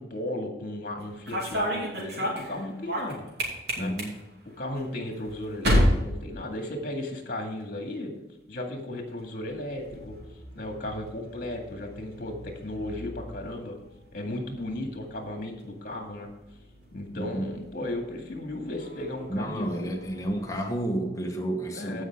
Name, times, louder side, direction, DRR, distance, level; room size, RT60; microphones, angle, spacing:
voice 1, 0.0-3.3 3.8-3.9 4.6-8.1 8.5-10.2 10.5-13.8 14.1-16.3 16.9-19.8 21.7-22.0, left 1 dB, 50° left, 3 dB, 2.0 m, -35 dB
sound 1, 1.0-7.2 7.5-8.0 9.1-20.7, equal, 60° right, 2.8 m, -33 dB
voice 2, 3.8-4.1 17.1-17.5 19.3-22.0, right 1 dB, 15° left, 2 dB, 1.2 m, -31 dB
15.5 x 5.5 x 3.6 m, 1.0 s
head